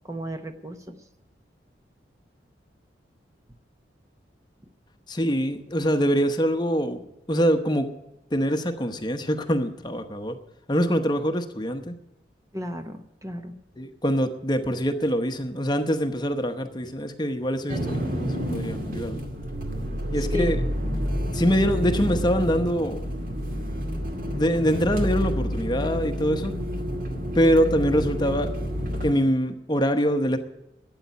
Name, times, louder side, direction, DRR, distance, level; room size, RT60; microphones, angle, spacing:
voice 1, 0.0-1.0 12.5-13.5 20.3-20.5, left 1 dB, 15° right, 7 dB, 0.9 m, -33 dB
voice 2, 5.1-7.0 7.3-7.9 8.3-10.4 10.7-11.9 13.8-19.2 20.1-20.6 21.3-23.0 24.3-26.6 27.3-28.5 29.0-30.4, equal, 25° left, 7 dB, 0.9 m, -24 dB
sound 1, 17.7-29.1, equal, 50° right, 2.2 m, -29 dB
12.5 x 9.0 x 9.4 m, 0.90 s
head